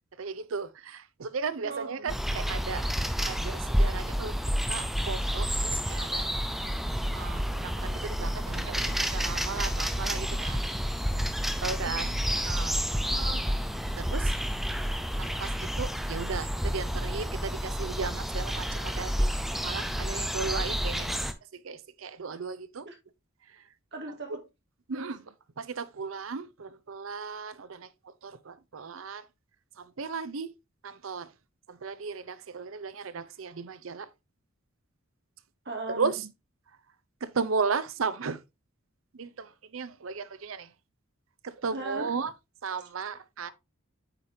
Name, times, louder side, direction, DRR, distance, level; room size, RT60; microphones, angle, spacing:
voice 1, 0.2-2.9 3.2-4.3 4.7-6.3 7.1-10.6 11.6-12.8 14.0-14.3 15.2-19.3 19.6-21.2 21.5-22.9 23.5-23.6 24.9-25.2 25.6-29.2 29.8-30.5 30.8-31.3 31.7-34.1 35.9-36.3 37.2-38.4 39.1-40.7 41.4-42.3 42.6-43.5, right 5 dB, 85° right, 0.6 m, -35 dB
sound 1, 2.1-21.3, equal, ahead, 0.6 m, -30 dB
voice 2, 11.6-12.1 13.1-13.5 22.8-22.9 23.9-24.4 24.9-25.1 35.6-36.1 41.7-42.1, right 2 dB, 60° right, 2.1 m, -38 dB
8.5 x 5.0 x 2.7 m
head